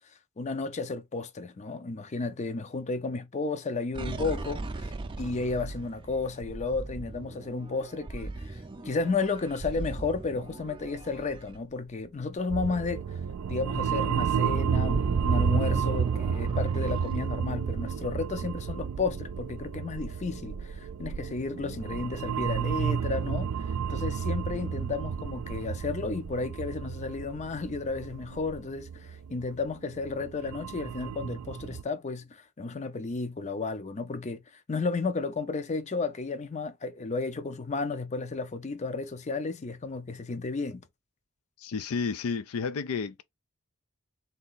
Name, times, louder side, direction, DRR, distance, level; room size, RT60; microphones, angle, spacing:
voice 1, 0.4-4.9 5.2-13.2 13.5-40.8, left 4 dB, 30° left, 0.5 m, -33 dB
sound 1, 3.9-12.3 12.7-12.9 13.2-17.4, right 2 dB, 25° right, 0.4 m, -37 dB
sound 2, 12.5-31.8, right 7 dB, 85° right, 0.4 m, -31 dB
voice 2, 41.6-43.2, left 5 dB, 90° left, 0.4 m, -31 dB
3.4 x 2.8 x 4.0 m
head